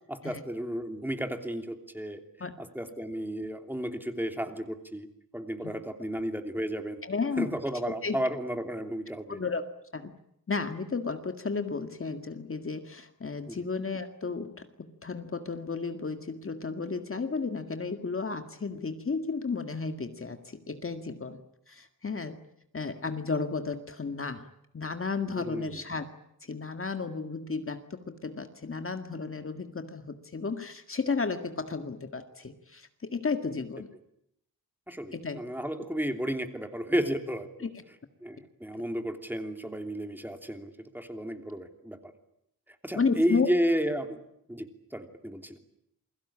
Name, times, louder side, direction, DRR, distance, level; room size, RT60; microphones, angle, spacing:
voice 1, 0.1-2.2 2.6-5.1 5.3-7.0 7.4-9.4 13.5-13.6 25.3-25.8 34.9-37.7 38.2-42.1 42.7-44.2 44.5-45.6, equal, 5° right, 6 dB, 3.0 m, -33 dB
voice 2, 7.0-7.5 8.0-8.2 9.3-9.6 9.9-10.1 10.5-21.4 21.7-22.4 22.7-24.5 24.7-26.1 26.4-33.9 35.1-35.4 37.6-37.7 38.7-38.8 43.0-43.5, left 4 dB, 35° left, 7 dB, 1.9 m, -33 dB
29.0 x 22.5 x 8.7 m, 0.77 s
wide cardioid pair, 140°, 35 cm